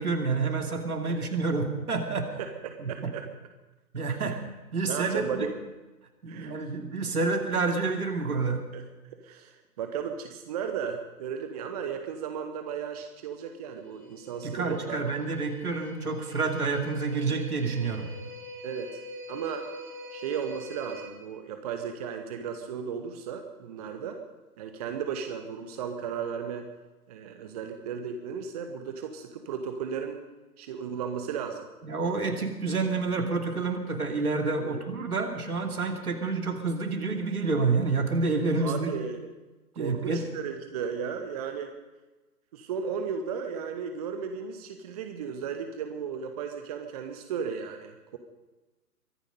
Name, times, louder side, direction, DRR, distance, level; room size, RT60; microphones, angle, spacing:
voice 1, 0.0-2.3 2.8-3.1 3.9-4.4 4.7-5.5 6.2-8.6 14.4-18.1 31.8-38.9 39.8-40.2, right 4 dB, 65° right, 3 dB, 2.7 m, -28 dB
voice 2, 2.4-3.2 4.1-4.3 4.9-5.5 6.3-6.6 8.7-8.8 9.2-15.1 18.6-19.0 19.3-19.7 20.1-24.2 24.6-26.7 27.1-30.2 30.6-31.7 34.6-34.8 38.6-39.3 39.8-41.7 42.5-48.2, right 7 dB, 25° right, 6 dB, 0.9 m, -35 dB
sound 1, 13.6-21.1, equal, 80° left, 5.7 m, -45 dB
23.0 x 10.5 x 5.3 m, 1.1 s
figure-of-eight pair, 130°, 48 cm